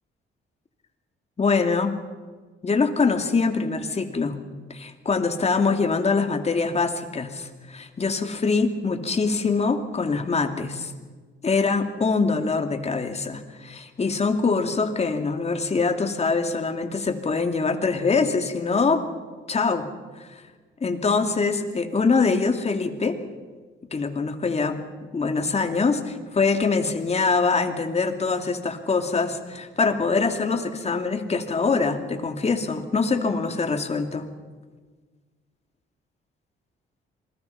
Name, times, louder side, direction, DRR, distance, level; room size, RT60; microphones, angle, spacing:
voice 1, 1.4-2.0 2.6-4.4 4.7-10.9 11.4-19.0 19.5-19.9 20.2-20.4 20.8-23.2 23.9-24.8 25.1-34.3, left 4 dB, 35° left, 6 dB, 2.7 m, -24 dB
27.0 x 21.0 x 5.9 m, 1.4 s
cardioid pair, 90°, 20 cm